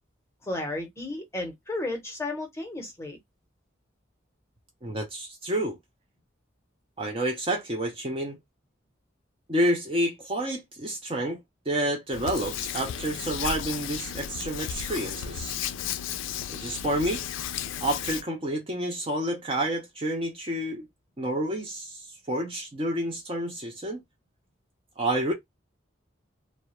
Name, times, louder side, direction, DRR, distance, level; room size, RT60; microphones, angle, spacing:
voice 1, 0.4-3.2, left 2 dB, 15° left, 0.7 m, -33 dB
voice 2, 4.8-5.8 7.0-8.4 9.5-11.4 11.7-15.6 16.5-17.2 17.8-20.9 21.2-24.0 25.0-25.3, right 1 dB, 25° right, 0.5 m, -29 dB
Hands, 12.1-18.2, left 9 dB, 75° left, 0.3 m, -34 dB
2.2 x 2.0 x 2.8 m
head